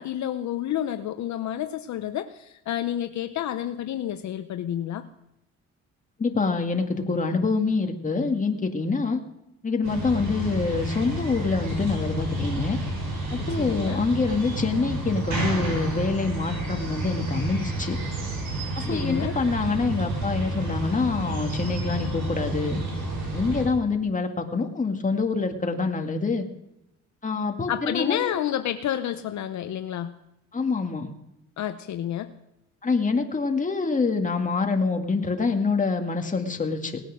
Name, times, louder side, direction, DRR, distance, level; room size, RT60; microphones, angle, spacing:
voice 1, 0.0-5.1 13.4-14.0 18.7-19.3 27.7-30.1 31.6-32.3, left 11 dB, 70° left, 9 dB, 0.8 m, -30 dB
voice 2, 6.2-9.2 9.6-12.8 13.3-18.0 18.7-22.8 23.3-26.5 27.2-28.3 30.5-31.1 32.8-36.9, left 4 dB, 25° left, 4 dB, 2.0 m, -26 dB
sound 1, 9.8-23.6, right 1 dB, 80° right, 6.8 m, -30 dB
19.0 x 8.9 x 6.3 m, 0.90 s
cardioid pair, 90°, 30 cm